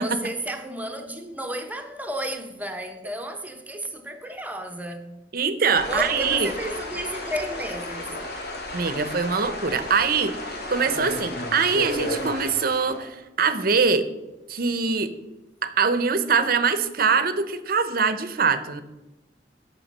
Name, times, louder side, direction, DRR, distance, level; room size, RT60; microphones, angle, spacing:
voice 1, 0.0-5.1 5.9-8.1, right 1 dB, 10° right, 1.0 m, -32 dB
voice 2, 5.3-6.5 8.7-10.3 10.7-14.1 14.5-15.1 15.6-18.8, right 5 dB, 55° right, 0.8 m, -23 dB
sound 1, 5.7-13.1, left 1 dB, 65° left, 1.9 m, -33 dB
9.0 x 6.8 x 5.4 m
head